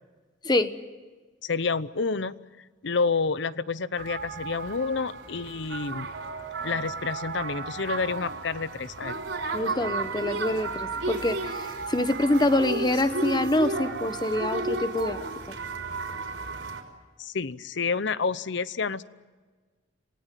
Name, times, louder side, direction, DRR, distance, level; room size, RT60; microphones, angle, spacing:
voice 1, 1.4-2.3 2.8-6.1 6.6-9.2 17.2-19.0, left 4 dB, 65° left, 17 dB, 0.8 m, -29 dB
sound 1, 4.0-16.8, right 3 dB, 75° right, 4.0 m, -33 dB
voice 2, 9.5-15.2, left 1 dB, 20° left, 11 dB, 1.1 m, -25 dB
27.0 x 18.5 x 9.3 m, 1.4 s
head